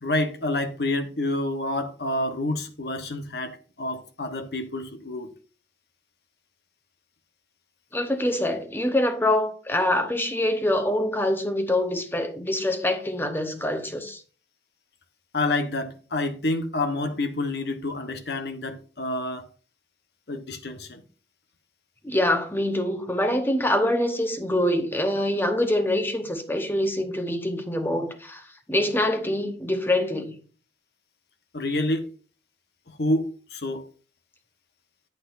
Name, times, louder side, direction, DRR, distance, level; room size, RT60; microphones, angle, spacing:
voice 1, 0.0-5.3 15.3-19.5 20.3-21.0 31.5-32.1 32.9-33.9, left 2 dB, 65° left, 1.1 m, -28 dB
voice 2, 7.9-14.2 22.0-28.4 28.7-30.4, left 1 dB, 10° left, 1.0 m, -25 dB
9.1 x 8.0 x 2.6 m
head